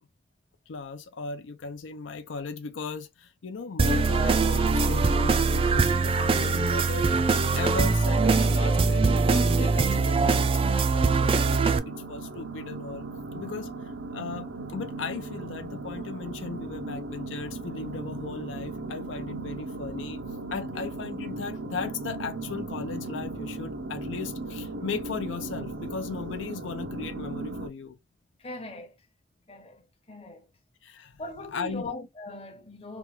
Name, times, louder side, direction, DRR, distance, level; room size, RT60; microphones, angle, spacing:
voice 1, 0.7-7.1 7.6-13.1 13.3-20.2 20.5-28.0 30.8-31.2 31.5-31.9, left 4 dB, 90° left, 0.5 m, -37 dB
sound 1, 3.8-11.8, right 4 dB, 30° right, 0.3 m, -22 dB
sound 2, 11.1-27.7, right 2 dB, 90° right, 0.5 m, -37 dB
voice 2, 28.4-29.0 29.5-30.5 31.2-33.0, left 2 dB, 30° left, 0.8 m, -40 dB
3.0 x 2.3 x 3.1 m
head